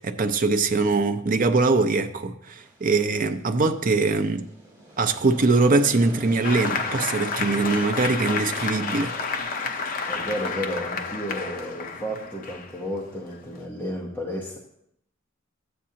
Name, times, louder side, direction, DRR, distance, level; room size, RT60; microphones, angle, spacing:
voice 1, 0.0-4.5 5.0-9.1, right 3 dB, 40° right, 0.6 m, -22 dB
sound 1, 2.4-9.4, right 1 dB, 20° right, 2.7 m, -45 dB
Applause, 6.4-13.6, left 4 dB, 45° left, 0.8 m, -31 dB
voice 2, 10.1-14.6, equal, 10° left, 0.9 m, -32 dB
12.5 x 8.6 x 2.8 m
head